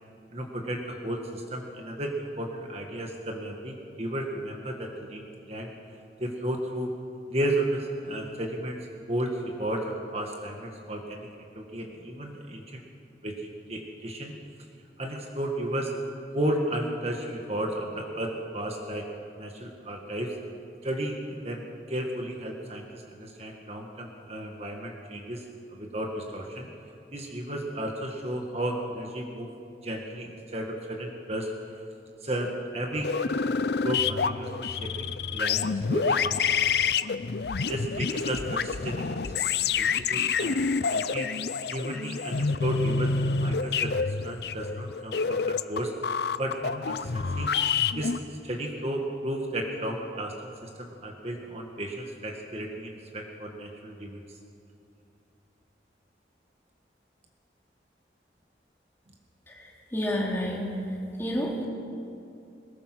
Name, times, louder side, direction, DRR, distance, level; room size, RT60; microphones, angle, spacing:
voice 1, 0.3-5.7 6.2-6.9 7.3-8.8 9.1-12.8 13.2-14.3 15.0-15.9 16.3-19.0 19.4-20.4 20.8-25.5 25.7-26.7 27.1-29.5 29.8-31.5 32.2-33.1 33.6-36.2 37.7-47.5 47.9-48.1 48.4-50.3 50.6-54.2, right 1 dB, 35° right, 1 dB, 1.7 m, -33 dB
sound 1, 32.9-48.2, left 5 dB, 70° left, 0.6 m, -28 dB
voice 2, 59.5-60.6 61.2-61.7, equal, 15° left, -3 dB, 3.2 m, -30 dB
21.5 x 20.5 x 6.2 m, 2.6 s
head